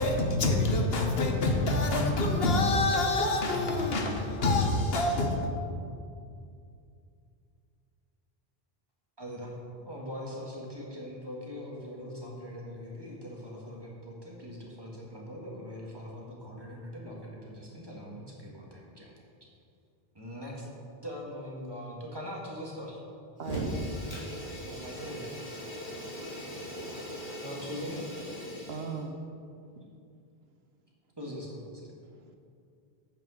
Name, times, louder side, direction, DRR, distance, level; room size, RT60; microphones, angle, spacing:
voice 1, 0.0-5.5, left 2 dB, 70° left, 3 dB, 1.3 m, -26 dB
voice 2, 9.2-9.6 9.8-19.1 20.1-20.7 21.0-23.0 24.6-25.5 27.4-28.0 31.2-31.9, equal, 25° right, -3 dB, 1.8 m, -41 dB
Fire, 23.4-29.0, equal, 45° left, 2.9 m, -38 dB
voice 3, 23.4-23.7 28.5-29.2 32.0-32.4, right 5 dB, 75° right, 5 dB, 1.1 m, -38 dB
8.7 x 6.2 x 6.4 m, 2.4 s
omnidirectional pair, 1.1 m